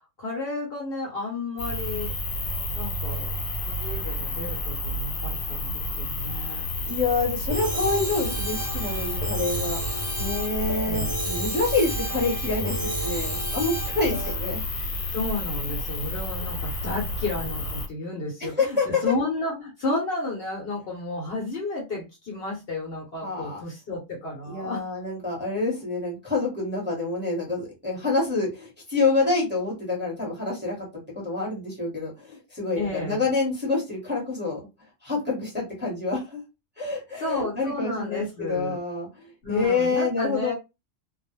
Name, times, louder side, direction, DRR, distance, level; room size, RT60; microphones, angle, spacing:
voice 1, 0.2-2.1 2.7-3.3 3.7-6.6 10.8-11.2 15.1-24.8 32.8-33.2 37.2-38.8 39.4-40.5, left 2 dB, 55° left, -1 dB, 0.9 m, -32 dB
sound 1, 1.6-17.9, left 1 dB, 75° left, 1.1 m, -30 dB
voice 2, 6.8-9.8 10.2-14.6 18.4-19.0 23.2-23.6 24.4-30.9 31.1-34.6 35.0-36.4 36.8-40.5, left 3 dB, 10° right, -5 dB, 1.0 m, -27 dB
sound 2, 7.5-14.3, right 2 dB, 45° right, 0.8 m, -33 dB
2.3 x 2.0 x 3.1 m, 0.26 s
omnidirectional pair, 1.3 m